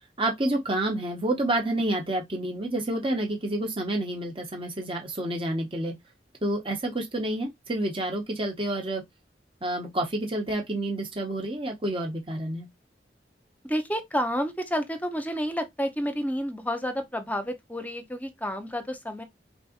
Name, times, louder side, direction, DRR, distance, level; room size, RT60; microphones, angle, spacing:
voice 1, 0.2-5.9 6.4-9.0 9.6-12.7, right 1 dB, 30° right, 1.3 m, -29 dB
voice 2, 13.6-19.2, equal, 10° left, 1.0 m, -30 dB
4.4 x 4.0 x 2.6 m
head